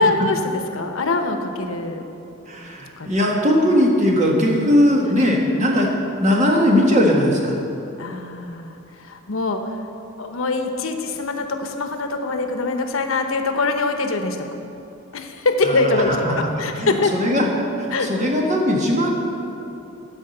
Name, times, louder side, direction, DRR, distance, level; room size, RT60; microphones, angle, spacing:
voice 1, 0.0-2.0 3.0-3.1 8.0-9.9 10.2-14.5 15.1-17.1 17.9-18.1, left 3 dB, 85° left, 5 dB, 0.9 m, -23 dB
voice 2, 2.4-7.6 15.6-16.5 16.8-19.1, equal, 35° right, -1 dB, 1.6 m, -19 dB
12.5 x 5.1 x 7.8 m, 2.8 s
head